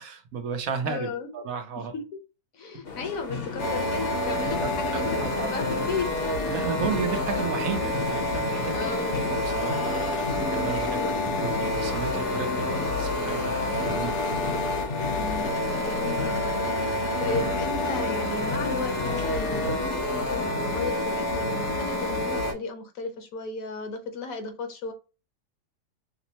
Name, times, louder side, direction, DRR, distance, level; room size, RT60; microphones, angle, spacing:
voice 1, 0.0-1.9 4.6-4.7 5.2-5.5 6.5-8.8 9.3-12.7 13.0-14.1 16.9-17.0, right 6 dB, 65° right, 1.1 m, -34 dB
voice 2, 0.9-1.3 1.8-2.2 2.5-6.3 8.7-9.3 10.6-11.4 12.5-12.8 15.1-24.9, left 4 dB, 65° left, 1.3 m, -35 dB
sound 1, 2.8-19.7, left 4 dB, 45° left, 0.9 m, -36 dB
sound 2, 3.6-22.5, left 1 dB, 90° left, 1.6 m, -28 dB
5.9 x 2.1 x 2.8 m
omnidirectional pair, 1.7 m